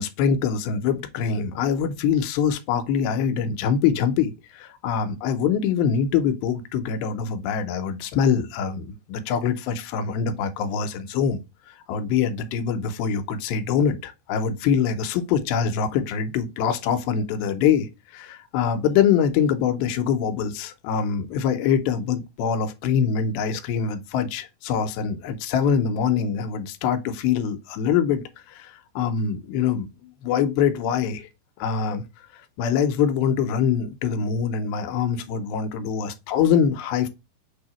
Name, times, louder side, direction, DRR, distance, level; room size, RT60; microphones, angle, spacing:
voice 1, 0.0-11.4 11.9-31.3 31.6-32.0 32.6-37.1, left 7 dB, 90° left, 2.5 m, -24 dB
6.4 x 2.7 x 2.9 m
omnidirectional pair, 4.2 m